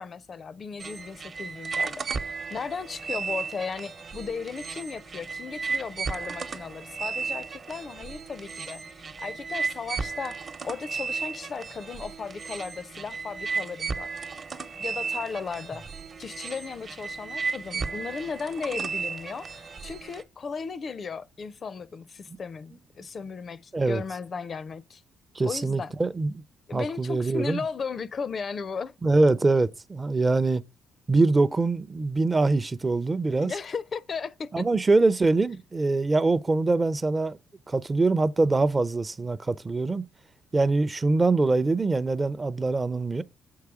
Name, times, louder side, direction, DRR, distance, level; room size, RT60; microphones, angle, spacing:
voice 1, 0.0-14.1 14.8-15.8 16.2-25.0 25.4-25.9 26.7-28.9 33.4-34.6, left 5 dB, 45° left, 0.4 m, -36 dB
sound 1, 0.8-20.2, right 4 dB, 45° right, 0.9 m, -34 dB
voice 2, 25.3-26.3 26.7-27.6 29.0-30.6 31.1-33.5 34.5-37.4 37.7-40.0 40.5-43.2, right 3 dB, 25° right, 0.5 m, -23 dB
6.6 x 4.7 x 4.8 m
cardioid pair, 90°, 0 cm